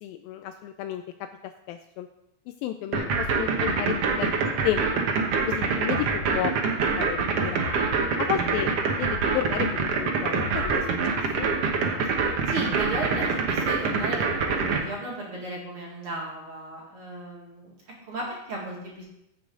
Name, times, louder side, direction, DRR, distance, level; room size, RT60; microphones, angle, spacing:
voice 1, 0.0-1.3 1.7-2.1 2.6-5.0 5.5-6.5 7.0-7.7 8.2-8.7 9.0-11.5, left 11 dB, 85° left, 8 dB, 2.0 m, -32 dB
sound 1, 2.9-14.8, right 5 dB, 85° right, 1.3 m, -25 dB
voice 2, 5.9-6.4 12.5-17.7 18.1-19.0, right 2 dB, 45° right, -3 dB, 2.2 m, -35 dB
15.0 x 7.0 x 3.8 m, 0.83 s
omnidirectional pair, 4.6 m